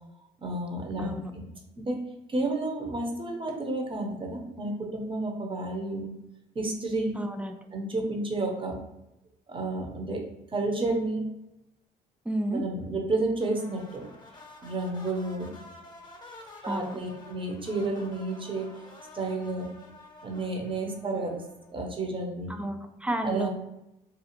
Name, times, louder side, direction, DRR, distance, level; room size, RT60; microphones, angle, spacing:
voice 1, 0.4-1.5 1.8-2.0 2.3-6.1 6.5-7.1 7.7-8.8 9.5-11.2 12.5-14.1 14.6-15.5 16.6-18.7 19.1-19.7 20.2-21.4 21.7-22.6 23.2-23.5, right 2 dB, 25° right, 2 dB, 0.7 m, -31 dB
voice 2, 1.0-1.3 7.1-7.5 12.3-12.6 16.7-17.0 22.5-23.5, right 1 dB, 5° right, 6 dB, 0.3 m, -31 dB
sound 1, 13.4-21.8, left 2 dB, 20° left, 0.7 m, -50 dB
2.5 x 2.4 x 2.9 m, 0.90 s
hypercardioid pair, 55°, 21 cm